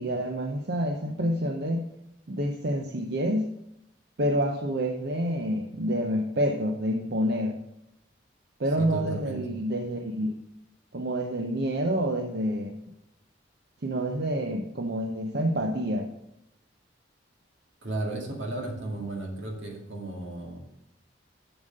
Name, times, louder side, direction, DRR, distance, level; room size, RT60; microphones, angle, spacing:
voice 1, 0.0-1.9 2.3-3.5 4.2-7.6 8.6-10.4 10.9-12.8 13.8-16.1, equal, 60° right, 4 dB, 0.7 m, -28 dB
voice 2, 8.8-9.4 17.8-20.6, right 2 dB, 80° right, 0 dB, 2.3 m, -34 dB
7.3 x 7.0 x 6.5 m, 0.82 s
head